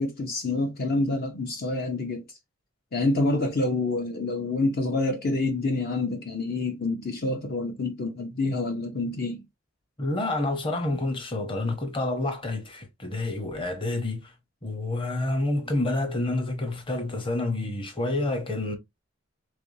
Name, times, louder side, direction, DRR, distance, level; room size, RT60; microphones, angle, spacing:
voice 1, 0.0-2.2 2.9-9.4, left 2 dB, 50° left, 0.6 m, -27 dB
voice 2, 10.0-14.3 14.6-18.8, left 2 dB, 25° left, 0.9 m, -28 dB
3.5 x 3.3 x 2.7 m
head